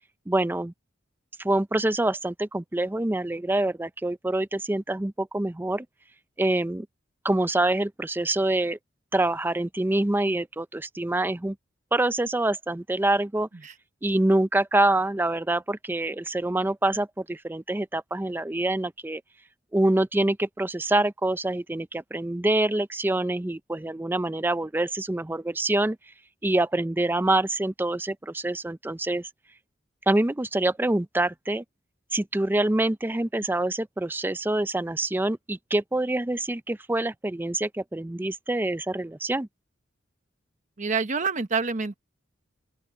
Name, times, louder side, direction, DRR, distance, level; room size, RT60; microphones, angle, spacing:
voice 1, 0.3-0.7 1.4-5.9 6.4-6.9 7.2-8.8 9.1-11.6 11.9-13.5 14.0-19.2 19.7-26.0 26.4-29.3 30.1-31.6 32.1-39.5, right 2 dB, 10° right, 0.4 m, -26 dB
voice 2, 40.8-42.0, right 5 dB, 40° right, 0.9 m, -27 dB
open air
head